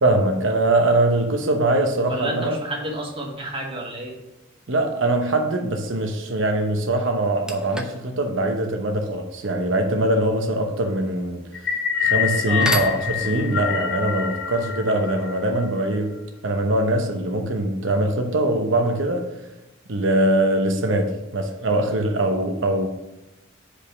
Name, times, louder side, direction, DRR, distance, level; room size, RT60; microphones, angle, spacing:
voice 1, 0.0-2.6 4.7-11.4 12.0-19.3 19.9-22.9, right 1 dB, 80° right, 4 dB, 0.9 m, -22 dB
voice 2, 2.0-4.1 12.5-12.9, right 1 dB, 30° right, 0 dB, 1.6 m, -30 dB
sound 1, 7.1-15.8, right 1 dB, 5° right, 0.7 m, -37 dB
sound 2, 11.5-15.9, left 9 dB, 65° left, 0.8 m, -26 dB
5.2 x 5.1 x 5.9 m, 0.98 s
head